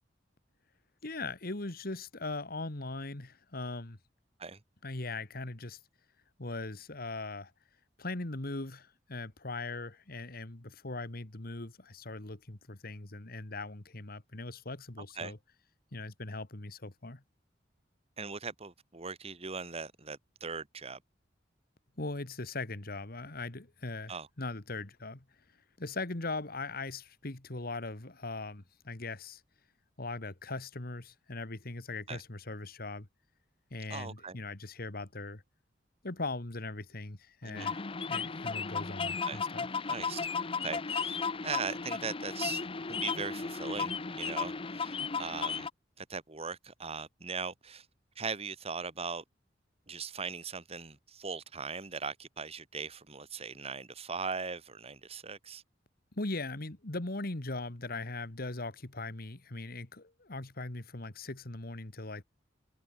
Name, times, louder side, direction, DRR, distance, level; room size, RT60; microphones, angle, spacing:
voice 1, 1.0-4.0 4.8-5.8 6.4-7.5 8.0-15.4 15.9-17.2 22.0-24.1 24.4-25.2 25.8-29.4 30.0-33.1 33.7-35.4 36.0-37.8 38.1-39.7 56.1-62.2, left 2 dB, 55° left, 2.0 m, -40 dB
voice 2, 18.2-21.0 24.1-24.3 32.1-32.2 33.9-34.4 37.4-37.7 39.3-39.4 39.9-40.3 40.6-41.2 41.4-45.7 46.0-47.9 48.2-49.2 49.9-55.6, right 5 dB, 35° right, 1.7 m, -39 dB
sound 1, 37.6-45.7, left 5 dB, 30° left, 0.8 m, -35 dB
head